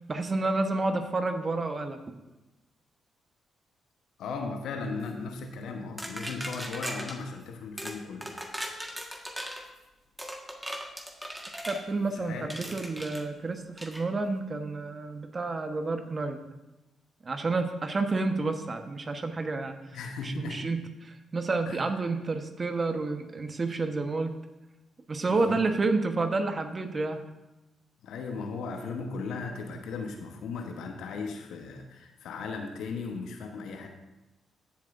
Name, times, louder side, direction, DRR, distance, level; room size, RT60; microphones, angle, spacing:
voice 1, 0.1-2.0 11.7-16.4 17.2-19.8 20.2-24.3 25.1-27.2, right 3 dB, 40° right, 7 dB, 1.2 m, -30 dB
voice 2, 4.2-8.4 11.5-11.6 12.0-12.8 19.9-20.7 21.6-21.8 25.3-25.7 28.0-33.9, left 4 dB, 70° left, 4 dB, 1.1 m, -37 dB
sound 1, 6.0-7.2 7.8-8.0 8.2-9.6 10.2-11.8 12.5-13.2 13.8-14.0, equal, 10° right, 1.6 m, -38 dB
15.0 x 7.4 x 2.6 m, 1.0 s
hypercardioid pair, 40°, 0 cm